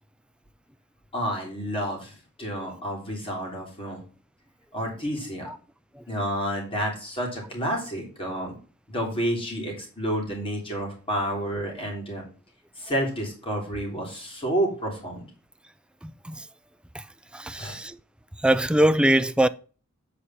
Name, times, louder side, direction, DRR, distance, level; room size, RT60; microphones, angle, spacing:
voice 1, 1.1-4.0 4.7-5.5 6.1-8.5 8.9-12.2 12.8-15.2 17.5-17.8, equal, 25° left, 3.4 m, -30 dB
voice 2, 16.0-16.4 16.9-17.0 17.3-18.0 18.4-19.5, right 1 dB, 5° right, 0.3 m, -23 dB
8.5 x 4.9 x 5.7 m
head